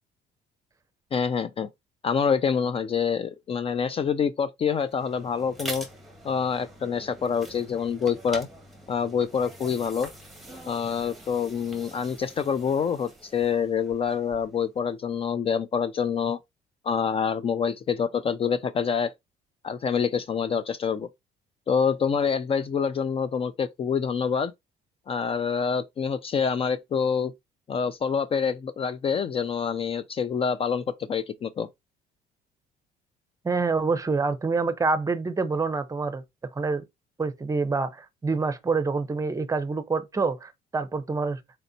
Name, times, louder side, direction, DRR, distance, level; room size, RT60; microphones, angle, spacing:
voice 1, 1.1-1.7 2.0-5.9 6.2-8.5 8.9-10.1 10.7-16.4 16.8-19.1 19.6-21.1 21.7-24.5 25.1-27.3 27.7-31.7, left 6 dB, 35° left, 0.4 m, -26 dB
sound 1, 4.8-14.6, right 1 dB, ahead, 1.6 m, -44 dB
voice 2, 33.4-36.2 36.5-36.8 37.2-41.4, right 4 dB, 20° right, 0.7 m, -26 dB
4.3 x 3.9 x 2.7 m
cardioid pair, 110°, 17 cm